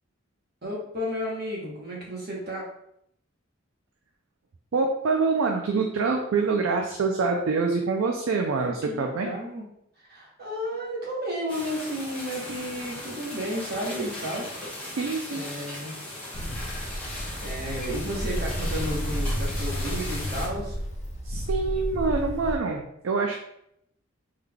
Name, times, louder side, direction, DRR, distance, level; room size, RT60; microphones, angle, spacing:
voice 1, 0.6-2.6 8.6-9.6 10.1-14.6 15.3-16.0 17.4-20.8, equal, 50° right, -3 dB, 1.0 m, -32 dB
voice 2, 4.7-9.3 15.0-15.5 17.2-17.3 21.2-23.4, right 4 dB, 75° right, 2 dB, 0.4 m, -26 dB
sound 1, 11.5-20.5, left 1 dB, 10° left, 0.9 m, -38 dB
Ocean, 16.3-22.6, equal, 35° left, 0.6 m, -31 dB
3.7 x 3.3 x 2.2 m, 0.75 s
head